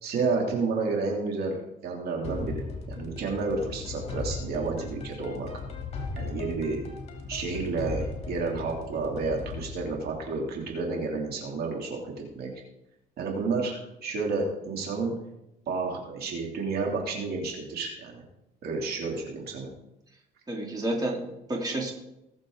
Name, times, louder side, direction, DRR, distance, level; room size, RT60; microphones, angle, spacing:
voice 1, 0.0-1.6 1.8-5.5 6.2-6.8 7.3-12.5 13.2-15.1 15.7-18.2 18.6-19.7, right 4 dB, 65° right, 0 dB, 3.0 m, -30 dB
sound 1, 2.2-11.1, left 3 dB, 40° left, 3.1 m, -37 dB
voice 2, 20.5-21.9, right 1 dB, 20° right, -1 dB, 3.1 m, -30 dB
20.5 x 7.4 x 3.9 m, 0.88 s
cardioid pair, 110°, 17 cm